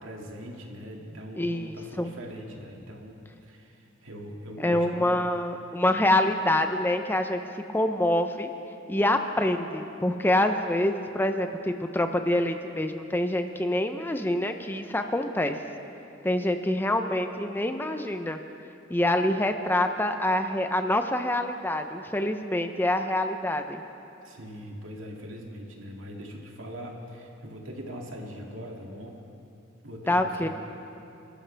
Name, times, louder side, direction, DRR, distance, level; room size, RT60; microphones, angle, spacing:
voice 1, 0.0-5.2 24.2-29.2 29.8-30.5, equal, 85° right, -1 dB, 2.3 m, -41 dB
voice 2, 1.4-2.1 4.6-7.4 7.7-8.5 8.9-15.6 16.2-18.4 18.9-23.8 30.1-30.5, left 1 dB, 10° left, 7 dB, 0.6 m, -26 dB
27.5 x 13.0 x 3.4 m, 2.8 s
head